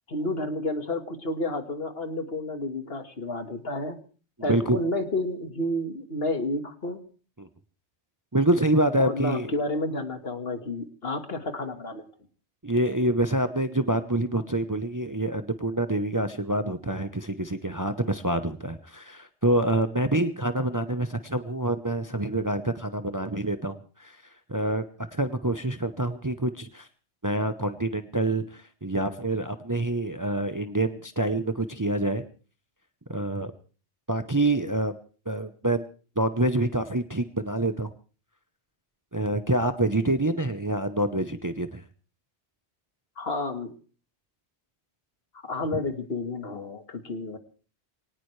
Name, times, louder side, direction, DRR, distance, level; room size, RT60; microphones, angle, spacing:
voice 1, 0.1-4.0 4.4-7.0 9.0-12.0 43.2-43.7 45.5-47.4, left 2 dB, 60° left, 7 dB, 1.9 m, -30 dB
voice 2, 8.3-9.5 12.6-24.2 24.5-26.9 27.2-32.3 33.1-33.5 34.1-35.0 35.3-35.9 36.2-37.9 39.1-41.8, right 1 dB, 20° right, 10 dB, 0.7 m, -26 dB
22.5 x 18.5 x 3.3 m, 0.38 s
omnidirectional pair, 1.1 m